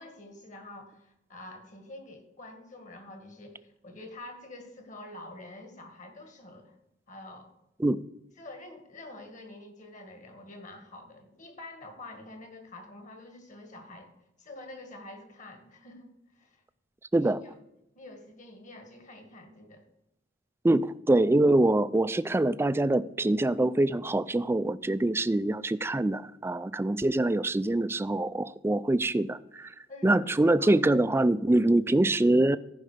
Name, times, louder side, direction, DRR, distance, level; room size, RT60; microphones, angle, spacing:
voice 1, 0.0-6.7 7.1-7.5 8.4-14.1 14.4-16.6 17.1-17.5 18.0-19.8 29.9-30.2 30.6-30.7, left 2 dB, 45° left, 5 dB, 1.9 m, -47 dB
voice 2, 20.6-29.7 30.0-32.6, right 2 dB, 15° right, 16 dB, 0.3 m, -24 dB
14.5 x 5.5 x 5.0 m, 0.87 s
head